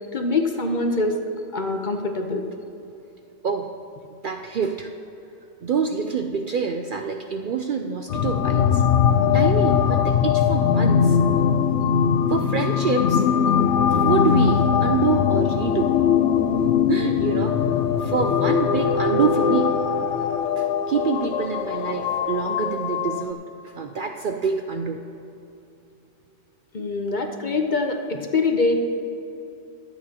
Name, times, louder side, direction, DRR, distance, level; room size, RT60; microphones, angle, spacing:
voice 1, 0.1-1.2 1.5-2.4 26.7-28.8, left 3 dB, 45° left, 4 dB, 0.9 m, -24 dB
voice 2, 4.2-4.9 5.6-8.8 9.3-11.2 12.3-13.2 13.8-16.0 16.9-17.6 18.0-19.8 20.6-23.4 23.7-25.0, right 5 dB, 55° right, 5 dB, 0.6 m, -26 dB
sound 1, 8.1-23.3, left 7 dB, 75° left, 0.9 m, -21 dB
23.5 x 8.9 x 2.9 m, 2.8 s
omnidirectional pair, 1.2 m